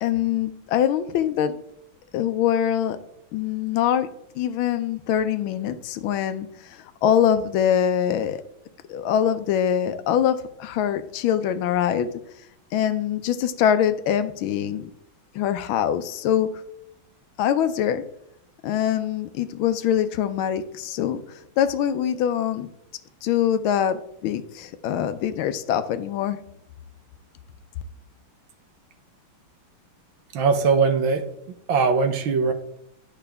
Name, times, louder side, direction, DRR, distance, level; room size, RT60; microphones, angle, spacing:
voice 1, 0.0-1.6 2.1-3.0 3.3-4.1 4.3-8.4 8.9-12.1 12.7-14.9 15.3-16.5 17.4-18.0 18.6-22.7 23.2-26.4, left 9 dB, 75° left, 12 dB, 1.4 m, -23 dB
voice 2, 30.3-31.3 31.7-32.5, right 5 dB, 70° right, 8 dB, 1.5 m, -20 dB
10.5 x 5.8 x 3.4 m, 0.77 s
omnidirectional pair, 2.3 m